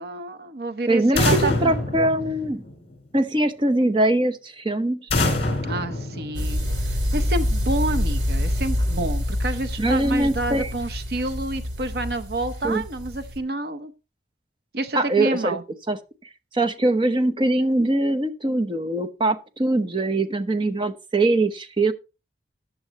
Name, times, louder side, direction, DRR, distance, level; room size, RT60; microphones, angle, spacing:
voice 1, 0.0-1.7 5.7-13.9 14.7-15.6, right 2 dB, 55° right, 9 dB, 0.8 m, -29 dB
voice 2, 0.9-2.6 3.1-5.1 9.8-10.7 12.6-12.8 14.9-15.6 15.9-16.0 16.5-21.9, right 2 dB, 25° right, 10 dB, 0.9 m, -22 dB
sound 1, 1.2-3.0 5.1-6.9, left 2 dB, 35° left, 4.2 m, -25 dB
sound 2, 6.3-13.4, left 1 dB, 75° right, 2.7 m, -26 dB
14.0 x 10.5 x 2.9 m, 0.30 s
head